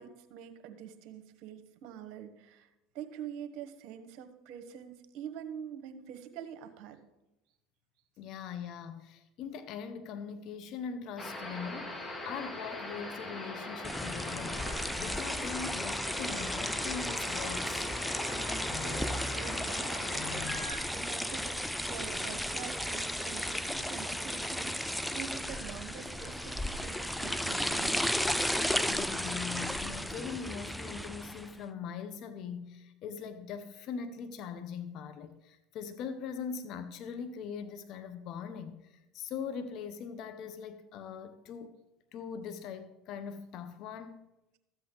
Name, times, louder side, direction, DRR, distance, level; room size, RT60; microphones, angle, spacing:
voice 1, 0.0-2.7 2.9-7.0 18.4-28.3, right 8 dB, 65° right, 8 dB, 1.2 m, -46 dB
voice 2, 8.2-14.7 15.0-17.9 28.8-41.8 42.1-44.2, left 6 dB, 60° left, 10 dB, 0.7 m, -41 dB
sound 1, 11.2-20.7, left 2 dB, 20° left, 1.8 m, -40 dB
sound 2, 13.8-31.5, equal, 5° left, 0.5 m, -34 dB
13.5 x 8.0 x 3.8 m, 0.95 s
supercardioid pair, 90°, 0 cm